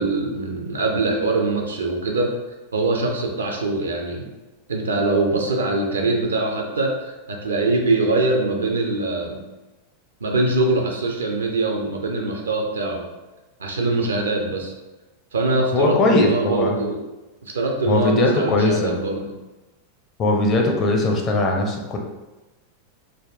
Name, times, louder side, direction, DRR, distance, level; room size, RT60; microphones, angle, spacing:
voice 1, 0.0-2.3 2.7-4.2 4.7-9.4 10.2-13.0 13.6-14.7 15.3-17.0 17.5-19.3, right 2 dB, 70° right, 1 dB, 0.5 m, -23 dB
voice 2, 15.7-16.7 17.9-18.9 20.2-22.0, left 2 dB, 30° left, 1 dB, 0.5 m, -19 dB
3.4 x 2.2 x 2.4 m, 1.1 s
figure-of-eight pair, 90°, 0 cm